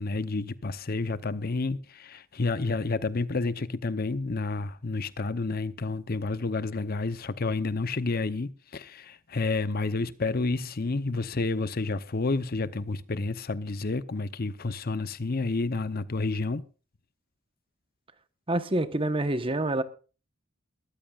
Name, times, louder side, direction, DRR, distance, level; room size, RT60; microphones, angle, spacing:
voice 1, 0.0-16.6, left 3 dB, 45° left, 0.7 m, -30 dB
voice 2, 18.5-19.8, right 1 dB, 25° right, 1.1 m, -27 dB
22.0 x 14.0 x 2.4 m
head